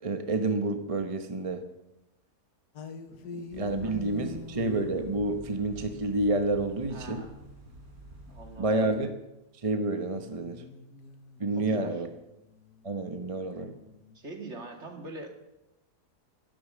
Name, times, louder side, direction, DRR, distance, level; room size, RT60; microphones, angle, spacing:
voice 1, 0.0-1.6 3.5-7.2 8.6-9.1 9.6-10.6 11.4-12.1 12.8-13.7, right 2 dB, 25° right, 6 dB, 0.9 m, -29 dB
sound 1, 2.8-8.4 10.0-14.2, left 5 dB, 85° left, 1.7 m, -46 dB
sound 2, 3.5-8.6, right 1 dB, 70° right, 4.0 m, -49 dB
voice 2, 6.9-7.4 8.3-8.8 11.5-12.0 14.1-15.4, right 2 dB, 45° right, 3 dB, 2.4 m, -43 dB
13.0 x 12.5 x 7.3 m, 0.92 s
omnidirectional pair, 1.7 m